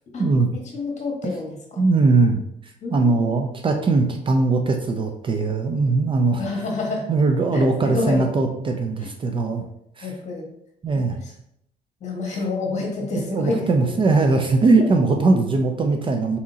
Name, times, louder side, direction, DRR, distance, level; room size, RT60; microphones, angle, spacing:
voice 1, 0.7-1.8 2.8-3.1 3.7-3.9 6.4-7.1 7.5-8.3 9.0-9.1 10.0-10.5 11.0-11.3 12.0-13.9, left 3 dB, 45° left, 0 dB, 1.3 m, -28 dB
voice 2, 1.8-2.4 2.9-6.4 7.1-9.6 10.0-10.1 10.8-11.2 13.1-16.4, right 3 dB, 30° right, 4 dB, 0.5 m, -20 dB
4.1 x 3.7 x 2.7 m, 0.75 s
cardioid pair, 110°, 17 cm